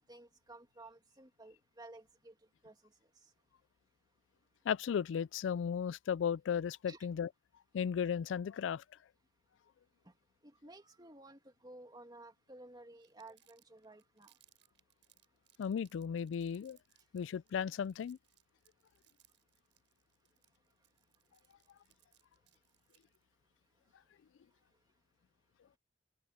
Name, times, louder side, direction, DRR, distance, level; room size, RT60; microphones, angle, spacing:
voice 1, 0.0-3.7 4.1-4.2 6.9-7.1 10.0-14.7 15.3-15.5 17.0-17.2 20.3-23.2 23.6-24.9, right 2 dB, 20° right, 2.6 m, -58 dB
voice 2, 4.7-7.3 7.7-8.8 15.6-16.8 17.1-18.2, left 7 dB, 90° left, 0.3 m, -35 dB
Crumpling crinkling, 13.0-23.2, right 14 dB, 75° right, 6.2 m, -70 dB
head